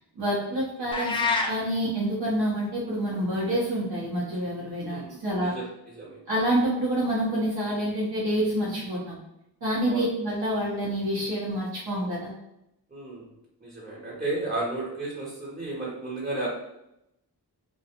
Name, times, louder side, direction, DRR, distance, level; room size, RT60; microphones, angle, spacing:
voice 1, 0.2-5.5 6.3-9.2 9.6-12.3, equal, 60° right, -6 dB, 0.8 m, -27 dB
sound 1, 0.9-1.6, left 4 dB, 15° left, 0.4 m, -25 dB
voice 2, 4.8-5.6 6.0-6.2 9.8-10.0 12.9-13.3 13.6-16.5, right 2 dB, 20° right, -7 dB, 0.7 m, -33 dB
2.4 x 2.2 x 2.8 m, 0.83 s
cardioid pair, 45°, 41 cm